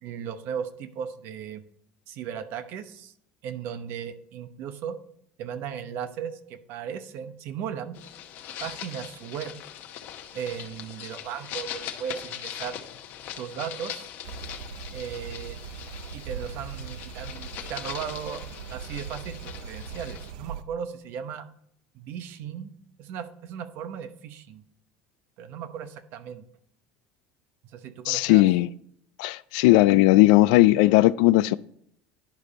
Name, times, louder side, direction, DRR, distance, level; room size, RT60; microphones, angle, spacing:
voice 1, 0.0-1.6 2.1-3.1 3.4-5.0 5.4-8.0 8.6-9.5 10.3-12.8 13.4-14.1 14.9-15.6 16.1-18.4 18.7-21.5 21.9-22.7 23.0-24.6 25.4-26.4 27.7-28.4, right 8 dB, 65° right, 0.9 m, -36 dB
sound 1, 7.9-20.3, left 10 dB, 60° left, 1.1 m, -41 dB
sound 2, 14.2-20.6, right 6 dB, 90° right, 0.6 m, -40 dB
voice 2, 28.1-28.7 29.2-31.6, left 18 dB, 80° left, 0.3 m, -18 dB
10.5 x 5.1 x 4.1 m
supercardioid pair, 120°, 4 cm